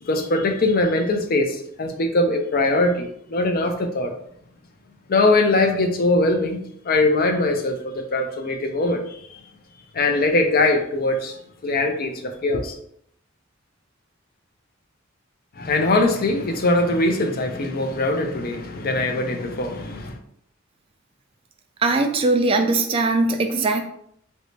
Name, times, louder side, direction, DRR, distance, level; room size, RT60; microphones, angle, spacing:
voice 1, 0.0-4.1 5.1-6.6 6.8-9.2 9.9-11.4 11.6-12.8 15.6-20.2, left 2 dB, 50° left, 5 dB, 0.5 m, -21 dB
voice 2, 21.8-23.8, right 3 dB, 25° right, 5 dB, 0.3 m, -20 dB
3.2 x 2.6 x 3.1 m, 0.69 s
head